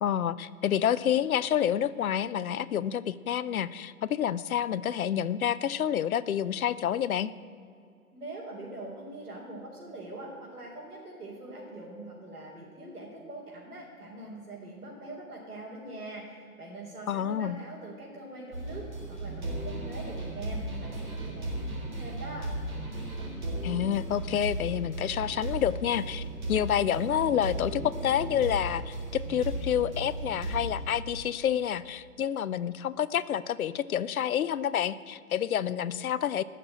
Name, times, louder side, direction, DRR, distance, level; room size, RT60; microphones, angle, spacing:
voice 1, 0.0-7.3 17.1-17.6 23.6-36.4, left 9 dB, 70° left, 15 dB, 0.7 m, -28 dB
voice 2, 8.1-22.5, right 2 dB, 75° right, -6 dB, 4.0 m, -43 dB
sound 1, 18.5-30.9, right 1 dB, 30° right, 3.2 m, -35 dB
14.0 x 6.7 x 8.8 m, 2.5 s
hypercardioid pair, 160°, 45 cm